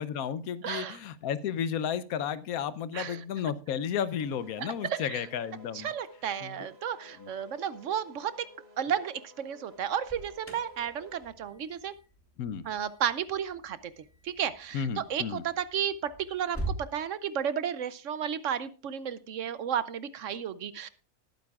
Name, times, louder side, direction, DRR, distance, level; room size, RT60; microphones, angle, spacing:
voice 1, 0.0-5.9 6.4-6.5 7.2-7.3 12.4-12.6 14.7-15.4, left 8 dB, 80° left, 16 dB, 1.2 m, -33 dB
voice 2, 0.6-1.0 2.9-3.2 4.6-5.2 5.7-8.5 8.8-11.9 12.6-20.9, right 8 dB, 65° right, 15 dB, 0.9 m, -33 dB
sound 1, 4.1-11.3, equal, 45° right, 1.6 m, -54 dB
Alarm, 9.7-16.9, right 2 dB, 10° left, 2.9 m, -43 dB
19.5 x 9.3 x 2.4 m, 0.35 s
omnidirectional pair, 1.5 m